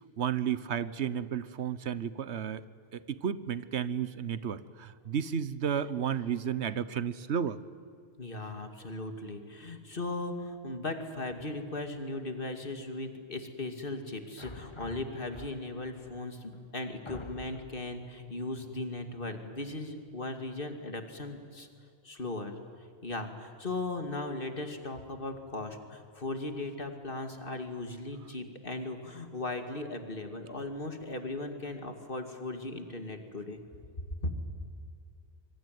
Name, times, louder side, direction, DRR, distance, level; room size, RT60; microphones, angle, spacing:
voice 1, 0.2-2.6 2.9-7.6, right 8 dB, 80° right, 16 dB, 1.2 m, -32 dB
voice 2, 8.2-21.7 22.0-22.5 23.0-33.6 34.2-34.3, left 2 dB, 55° left, 6 dB, 2.6 m, -37 dB
sound 1, 14.4-15.9 16.5-16.6 17.1-17.9, left 3 dB, 25° left, 1.2 m, -46 dB
26.0 x 23.5 x 9.4 m, 2.3 s
omnidirectional pair, 1.1 m